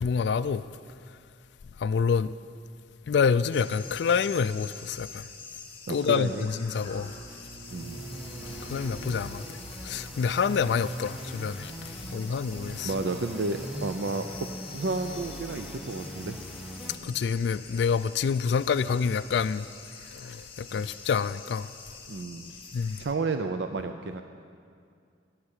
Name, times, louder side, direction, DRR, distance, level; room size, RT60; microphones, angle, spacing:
voice 1, 0.0-0.6 1.8-2.3 3.1-5.2 5.9-7.1 8.7-9.4 9.8-11.7 12.1-12.9 17.0-19.7 20.2-21.7 22.7-23.0, left 6 dB, 70° left, 0.3 m, -27 dB
sound 1, 3.5-23.1, left 4 dB, 30° left, 1.5 m, -47 dB
voice 2, 5.9-6.5 7.7-8.0 12.1-12.4 12.8-16.4 20.7-20.8 22.1-22.5 23.0-24.2, right 3 dB, 75° right, 0.5 m, -32 dB
sound 2, 6.8-10.7, right 2 dB, 50° right, 4.1 m, -45 dB
sound 3, 7.6-16.9, equal, ahead, 1.1 m, -41 dB
12.5 x 8.8 x 8.8 m
head